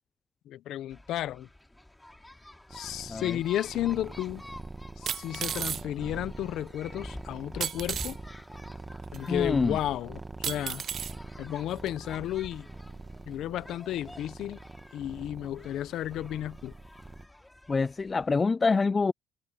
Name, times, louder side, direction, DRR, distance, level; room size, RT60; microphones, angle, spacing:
voice 1, 0.4-1.5 2.7-4.4 5.0-8.2 9.1-10.8 11.4-12.7 13.3-14.6 14.9-16.7, left 12 dB, 70° left, 1.3 m, -33 dB
sound 1, 0.9-18.3, left 1 dB, 10° left, 3.8 m, -49 dB
sound 2, 2.7-17.3, right 3 dB, 20° right, 2.2 m, -44 dB
sound 3, 3.8-3.9 5.1-5.8 7.6-8.1 9.1-9.2 10.4-11.1 11.9-12.0, right 9 dB, 55° right, 0.4 m, -33 dB
voice 2, 9.3-9.8 17.7-19.1, left 4 dB, 30° left, 0.3 m, -26 dB
supercardioid pair, 65°, 0 cm